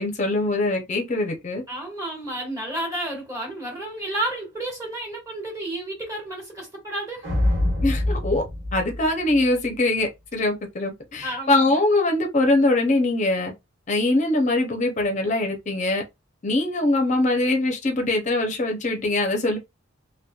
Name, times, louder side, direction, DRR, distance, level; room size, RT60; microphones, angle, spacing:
voice 1, 0.0-1.6 7.8-8.4 8.7-13.5 13.9-16.0 16.4-19.6, left 2 dB, 35° left, 0.5 m, -22 dB
voice 2, 1.7-7.3 11.2-11.7, right 1 dB, 15° right, 1.3 m, -31 dB
sound 1, 7.2-9.7, left 1 dB, 65° right, 1.3 m, -25 dB
2.8 x 2.1 x 2.2 m
head